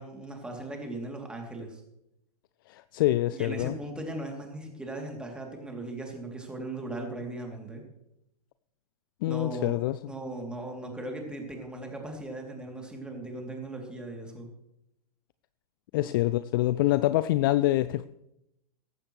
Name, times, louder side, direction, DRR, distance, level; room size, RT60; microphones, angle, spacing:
voice 1, 0.0-1.8 3.3-7.8 9.3-9.7 10.0-14.5, right 2 dB, 5° right, 2.9 m, -38 dB
voice 2, 2.7-3.7 9.2-10.0 15.9-18.1, left 15 dB, 35° left, 0.4 m, -25 dB
17.5 x 15.5 x 3.2 m
figure-of-eight pair, 105°, 20 cm